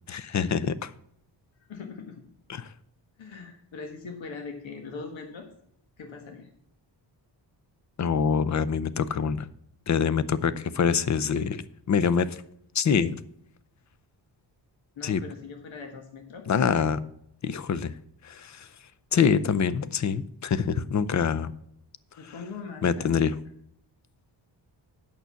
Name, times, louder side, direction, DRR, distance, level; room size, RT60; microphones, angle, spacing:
voice 1, 0.1-0.9 2.5-2.7 8.0-9.5 9.9-11.6 11.9-12.4 12.7-13.2 15.0-15.2 16.5-17.0 17.4-17.9 18.2-18.7 19.1-21.5 22.2-22.3 22.8-23.4, left 6 dB, 40° left, 16 dB, 0.6 m, -25 dB
voice 2, 1.7-2.2 3.2-5.5 6.0-6.5 14.9-16.4 16.8-16.9 22.2-23.1, left 4 dB, 90° left, 4 dB, 1.7 m, -41 dB
8.8 x 6.9 x 5.7 m, 0.70 s
wide cardioid pair, 140°, 45 cm